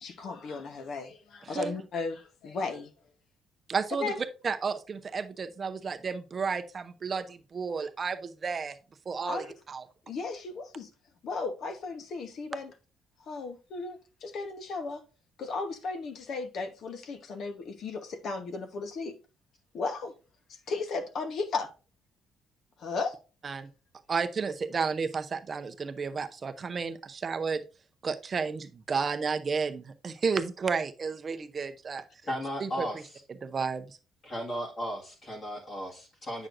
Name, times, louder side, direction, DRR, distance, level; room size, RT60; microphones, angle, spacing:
voice 1, 0.0-2.9 4.0-4.2 9.3-9.5 10.1-10.9 11.2-12.7 13.3-15.0 15.4-19.1 19.7-20.1 20.7-21.7 22.8-23.1, left 4 dB, 55° left, 1.1 m, -35 dB
voice 2, 3.7-4.1 4.4-8.8 9.1-9.9 23.4-23.7 24.1-27.6 28.0-32.0 32.6-32.9 33.4-34.0, right 5 dB, 30° right, 0.6 m, -32 dB
voice 3, 32.2-33.2 34.2-36.5, equal, 40° left, 1.8 m, -35 dB
8.8 x 6.2 x 2.5 m
cardioid pair, 140°, 0 cm